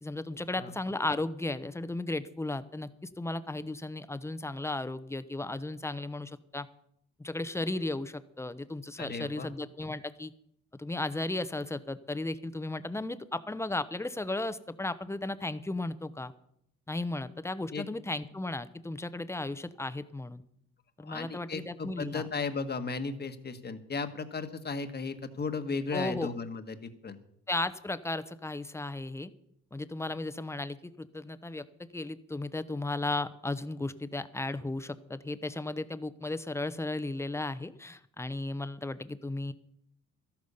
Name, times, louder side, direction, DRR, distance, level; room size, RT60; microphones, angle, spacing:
voice 1, 0.0-6.7 7.2-10.3 10.8-16.3 16.9-20.4 21.0-22.3 25.9-26.3 27.5-29.3 29.7-39.5, left 2 dB, 10° left, 13 dB, 0.8 m, -35 dB
voice 2, 9.0-9.5 17.7-17.8 21.0-27.2, left 4 dB, 35° left, 9 dB, 1.4 m, -35 dB
13.0 x 12.0 x 5.5 m, 0.72 s
cardioid pair, 90°, 30 cm